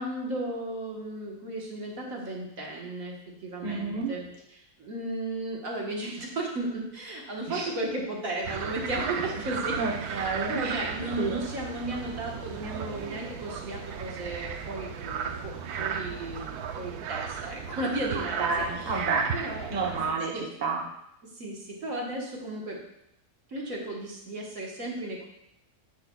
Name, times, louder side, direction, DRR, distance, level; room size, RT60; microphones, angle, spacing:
voice 1, 0.0-19.0 19.3-19.7 20.1-20.4 21.4-22.8 23.5-25.3, right 1 dB, 60° right, -1 dB, 1.7 m, -35 dB
voice 2, 3.6-4.2 7.5-7.7 9.8-10.8 11.2-11.4 18.4-19.3 19.7-20.8, right 4 dB, 35° right, -1 dB, 0.9 m, -30 dB
sound 1, 8.4-20.1, right 7 dB, 85° right, 1.1 m, -35 dB
10.0 x 5.6 x 2.3 m, 0.80 s
omnidirectional pair, 1.6 m